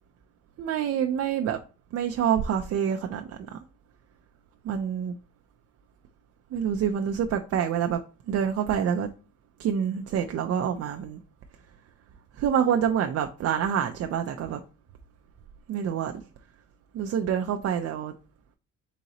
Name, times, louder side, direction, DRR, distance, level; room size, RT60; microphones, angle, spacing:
voice 1, 0.6-1.6 1.9-3.6 4.6-5.1 6.5-8.0 8.3-9.1 9.6-11.2 12.4-14.6 15.7-16.1 16.9-18.1, right 8 dB, 55° right, 0.4 m, -27 dB
4.0 x 3.7 x 2.9 m
cardioid pair, 130°, 30 cm